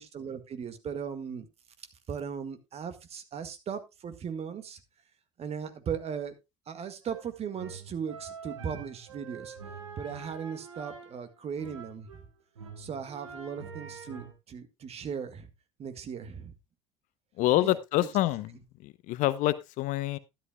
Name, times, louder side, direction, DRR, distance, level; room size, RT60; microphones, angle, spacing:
voice 1, 0.0-1.5 2.1-4.8 5.4-6.4 6.7-9.6 10.0-12.1 12.8-15.5 15.8-16.5 17.5-18.1, right 7 dB, 40° right, 1.8 m, -37 dB
sound 1, 7.0-12.2 12.5-14.3, right 5 dB, 85° right, 1.9 m, -45 dB
voice 2, 17.4-18.5 18.8-20.2, left 16 dB, 55° left, 0.7 m, -27 dB
12.5 x 11.0 x 2.3 m
hypercardioid pair, 65°, 16 cm